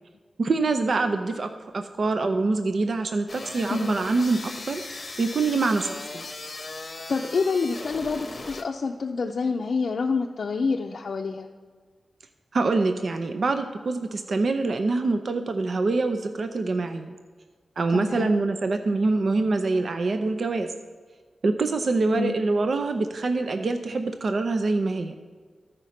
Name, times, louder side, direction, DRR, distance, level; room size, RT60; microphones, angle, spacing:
voice 1, 0.4-4.8 5.2-6.2 12.5-17.2 17.8-20.7 21.4-25.1, right 3 dB, 55° right, 7 dB, 0.5 m, -25 dB
sound 1, 3.3-8.6, left 3 dB, 35° left, 0.9 m, -38 dB
voice 2, 7.1-11.5 17.9-18.3 22.1-22.4, left 4 dB, 60° left, 1 dB, 0.5 m, -27 dB
13.5 x 5.1 x 5.8 m, 1.5 s
wide cardioid pair, 140°, 0 cm